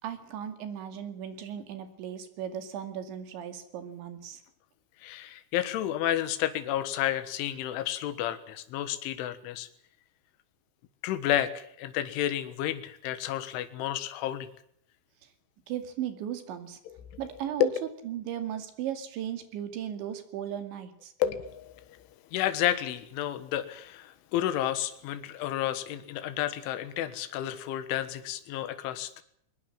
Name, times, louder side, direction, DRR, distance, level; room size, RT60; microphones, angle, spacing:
voice 1, 0.0-4.4 15.7-16.8 17.2-17.7 18.0-21.1, right 10 dB, 70° right, 9 dB, 4.6 m, -36 dB
voice 2, 5.0-9.7 11.0-14.5 16.9-17.0 17.6-17.7 21.2-21.7 22.3-29.2, left 12 dB, 80° left, 11 dB, 3.8 m, -31 dB
21.5 x 21.0 x 7.5 m, 0.68 s
omnidirectional pair, 5.6 m